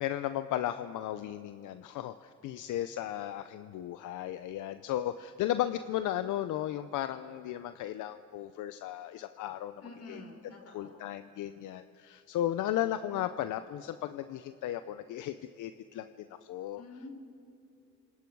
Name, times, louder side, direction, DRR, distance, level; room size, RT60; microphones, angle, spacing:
voice 1, 0.0-9.8 10.1-10.2 10.7-16.8, left 12 dB, 85° left, 11 dB, 0.7 m, -35 dB
voice 2, 9.8-11.0 16.8-17.1, left 2 dB, 55° left, 2 dB, 5.0 m, -48 dB
28.5 x 26.5 x 4.7 m, 2.6 s
cardioid pair, 90°, 30 cm